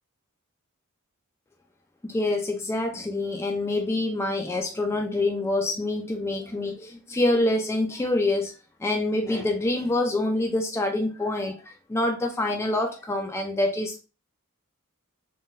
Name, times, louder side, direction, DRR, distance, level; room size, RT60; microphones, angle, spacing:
voice 1, 2.0-8.5 8.8-14.0, left 2 dB, 10° left, 2 dB, 0.4 m, -26 dB
3.7 x 2.2 x 2.5 m, 0.30 s
head